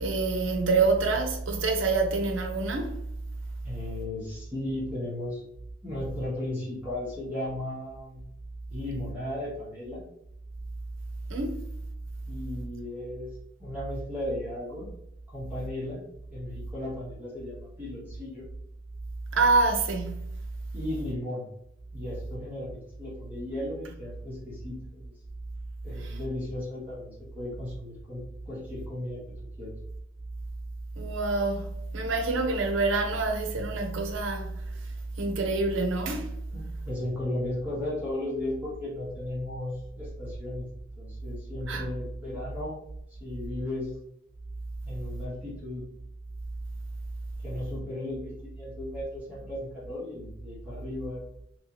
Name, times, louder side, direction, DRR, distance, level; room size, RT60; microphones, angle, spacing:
voice 1, 0.0-3.0 11.3-11.6 19.3-20.3 26.0-26.1 31.0-31.7 31.9-34.6 35.2-36.3 41.7-41.9, right 3 dB, 70° right, 0.7 m, -26 dB
voice 2, 3.6-5.4 5.8-8.3 8.7-10.0 12.3-13.3 13.6-14.9 15.3-16.0 16.3-18.5 20.7-21.5 21.9-25.1 25.8-28.2 28.5-29.2 29.6-29.8 36.5-40.7 41.0-42.8 43.2-43.9 44.8-45.8 47.4-51.3, left 1 dB, 10° right, 1.1 m, -35 dB
3.2 x 3.0 x 2.8 m
head